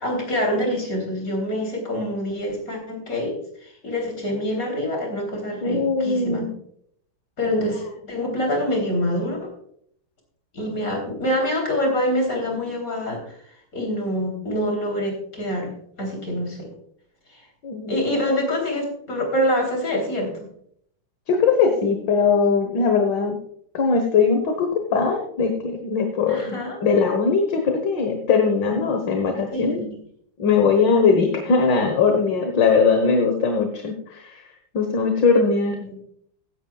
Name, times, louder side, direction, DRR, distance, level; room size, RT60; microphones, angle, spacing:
voice 1, 0.0-6.5 7.4-9.5 10.5-13.4 13.7-15.7 16.0-16.7 17.3-17.4 17.9-20.5 26.3-26.8 29.5-29.9 35.8-36.0, equal, 45° left, 1 dB, 3.8 m, -26 dB
voice 2, 5.6-6.5 17.6-17.9 21.3-23.4 23.7-29.8 30.4-34.4 34.7-35.8, left 5 dB, 65° left, 4 dB, 1.9 m, -20 dB
15.5 x 10.5 x 2.3 m, 0.66 s
omnidirectional pair, 2.2 m